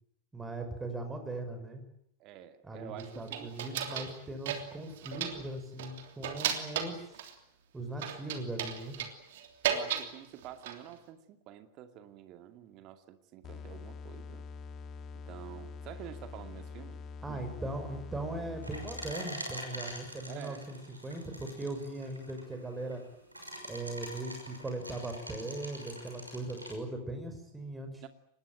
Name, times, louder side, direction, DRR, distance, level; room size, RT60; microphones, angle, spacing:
voice 1, 0.3-1.8 2.6-7.1 7.7-9.0 17.2-23.0 23.7-28.1, right 2 dB, 10° right, 6 dB, 5.9 m, -39 dB
voice 2, 2.2-3.5 9.7-14.4 15.1-17.0 17.3-17.4 20.3-20.6 28.0-28.1, right 11 dB, 40° right, 8 dB, 2.4 m, -48 dB
sound 1, 3.0-4.2 4.5-5.5 5.8-7.3 8.0-10.1 10.4-10.9, right 9 dB, 55° right, 3.2 m, -35 dB
sound 2, 13.4-19.4, left 5 dB, 30° left, 2.1 m, -45 dB
sound 3, 18.6-26.7, equal, 85° right, 6.1 m, -45 dB
25.0 x 20.5 x 9.3 m, 0.73 s
figure-of-eight pair, 90°, 0 cm